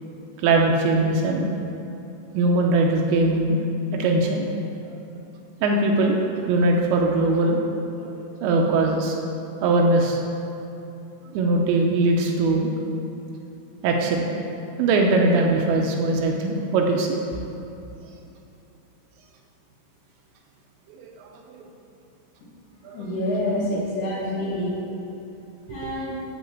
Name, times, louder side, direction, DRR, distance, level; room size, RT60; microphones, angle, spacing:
voice 1, 0.4-1.5 2.3-3.6 3.9-4.5 5.6-7.6 8.0-8.1 8.4-9.2 9.6-10.2 11.3-12.7 13.8-14.3 14.8-17.2 20.9-21.6 22.8-23.1 25.7-25.9, right 2 dB, 80° right, 1 dB, 2.8 m, -21 dB
voice 2, 22.9-24.8 25.7-26.2, left 1 dB, 65° left, -7 dB, 2.3 m, -27 dB
11.0 x 4.2 x 7.9 m, 2.8 s
omnidirectional pair, 5.5 m